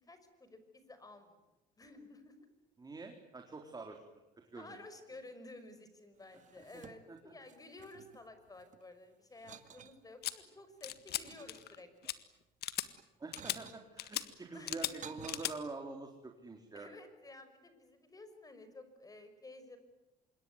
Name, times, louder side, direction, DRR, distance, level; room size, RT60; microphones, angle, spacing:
voice 1, 0.0-1.4 1.8-2.5 4.5-12.1 14.5-15.0 16.7-19.8, left 2 dB, 20° left, 10 dB, 5.8 m, -53 dB
voice 2, 2.8-4.0 4.5-4.8 7.1-7.3 13.2-16.9, right 3 dB, 25° right, 3 dB, 3.9 m, -46 dB
sound 1, 6.2-7.2 7.5-8.8 9.3-10.0 10.6-12.1 12.9-13.8 14.6-15.4, right 8 dB, 45° right, 2.0 m, -54 dB
sound 2, 10.2-10.3 10.8-11.2 11.5-11.8 12.0-12.1 12.6-12.9 13.3-13.6 14.0-14.2 14.7-14.9 15.3-15.5, left 13 dB, 70° left, 1.8 m, -37 dB
26.5 x 22.0 x 9.5 m, 1.0 s
cardioid pair, 110°, 17 cm